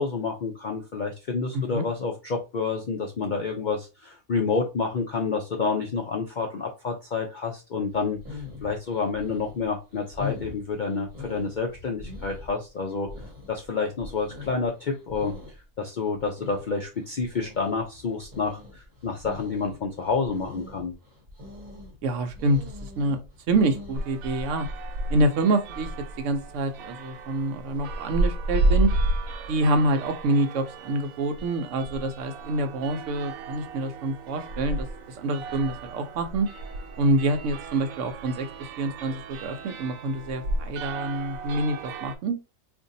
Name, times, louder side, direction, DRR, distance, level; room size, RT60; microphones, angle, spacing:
voice 1, 0.0-13.1 13.5-20.9, left 4 dB, 60° left, 1 dB, 0.5 m, -29 dB
voice 2, 1.5-1.8 22.0-23.2 23.5-24.7 25.1-25.9 26.2-28.9 29.5-34.9 35.2-36.5 37.0-42.4, right 2 dB, 70° right, 7 dB, 0.9 m, -26 dB
sound 1, 7.9-24.1, left 3 dB, 35° right, 1.1 m, -42 dB
sound 2, 23.9-42.2, right 2 dB, 90° right, 1.1 m, -32 dB
2.6 x 2.6 x 3.8 m, 0.29 s
omnidirectional pair, 1.4 m